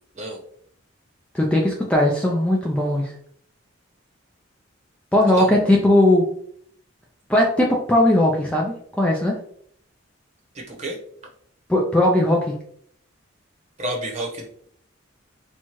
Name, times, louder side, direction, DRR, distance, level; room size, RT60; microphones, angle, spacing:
voice 1, 1.3-3.1 5.1-6.2 7.3-9.3 11.7-12.5, left 1 dB, 5° left, -1 dB, 0.4 m, -18 dB
voice 2, 13.8-14.5, right 1 dB, 35° right, -1 dB, 0.9 m, -29 dB
4.3 x 2.3 x 2.9 m, 0.64 s
head